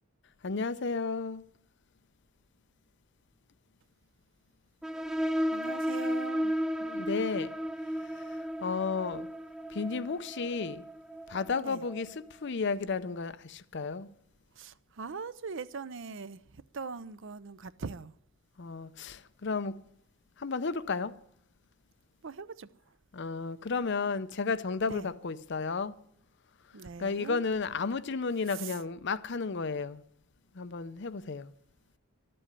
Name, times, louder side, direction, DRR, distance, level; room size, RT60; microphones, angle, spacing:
voice 1, 0.4-1.4 6.8-7.5 8.1-9.3 9.7-10.8 11.3-12.1 12.4-14.1 18.6-19.7 20.4-21.1 23.1-25.9 27.0-30.0 30.5-31.5, left 4 dB, 55° left, 0.6 m, -33 dB
sound 1, 4.8-12.1, equal, ahead, 0.4 m, -34 dB
voice 2, 5.5-6.5 11.6-11.9 14.5-18.1 22.2-22.7 24.8-25.1 26.7-27.5 28.5-28.8, right 5 dB, 60° right, 0.5 m, -41 dB
12.5 x 7.7 x 9.8 m
head